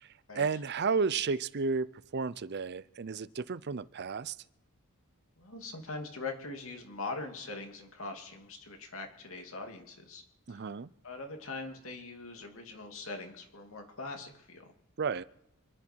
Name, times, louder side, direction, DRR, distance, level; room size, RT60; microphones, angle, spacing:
voice 1, 0.0-4.4 10.5-10.9 15.0-15.2, right 5 dB, 50° right, 0.6 m, -32 dB
voice 2, 5.4-10.2 10.5-10.7 11.0-14.7, left 3 dB, 65° left, 2.7 m, -42 dB
27.5 x 9.8 x 4.6 m
head